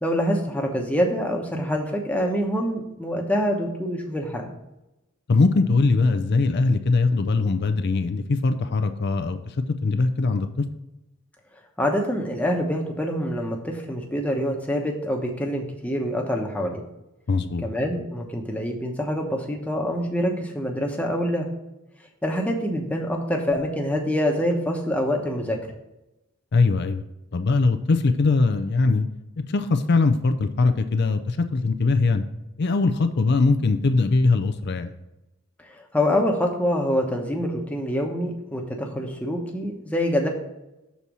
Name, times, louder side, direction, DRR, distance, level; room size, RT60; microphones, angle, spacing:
voice 1, 0.0-4.5 11.8-16.8 17.6-21.5 22.2-25.6 35.9-40.3, equal, 5° left, 1 dB, 1.0 m, -25 dB
voice 2, 5.3-9.4 9.8-10.6 17.3-17.6 26.5-27.0 27.3-29.1 29.5-32.2 32.6-34.9, left 3 dB, 50° left, 9 dB, 0.5 m, -21 dB
7.0 x 4.2 x 6.1 m, 0.94 s
head